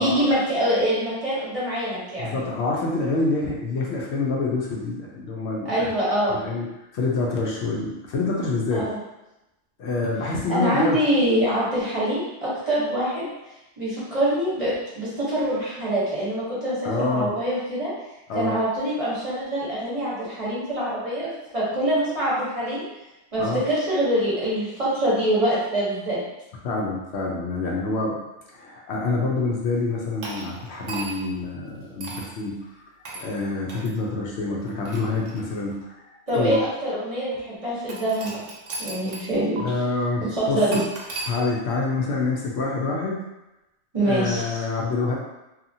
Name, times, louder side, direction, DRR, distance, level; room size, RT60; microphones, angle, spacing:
voice 1, 0.0-2.4 5.6-6.4 8.7-9.0 10.5-13.3 13.8-17.9 18.3-22.8 23.3-26.2 36.3-38.4 38.8-39.7 40.3-40.8 43.9-44.4, right 1 dB, 35° right, -9 dB, 0.8 m, -24 dB
voice 2, 2.2-5.9 6.3-6.6 6.9-8.9 9.8-11.0 16.8-17.3 18.3-18.5 23.4-23.6 26.6-28.2 28.5-32.7 33.2-36.0 36.3-36.6 39.6-40.8 41.3-43.2 44.0-45.2, left 3 dB, 70° left, -2 dB, 0.8 m, -26 dB
sound 1, 30.2-31.4 32.0-32.3 33.1-33.3 33.7-33.9 34.6-35.8 36.5-36.6 37.9-39.3 39.6-39.7 40.7-41.3, right 3 dB, 90° right, 1.0 m, -36 dB
2.8 x 2.3 x 2.6 m, 0.97 s
omnidirectional pair, 1.2 m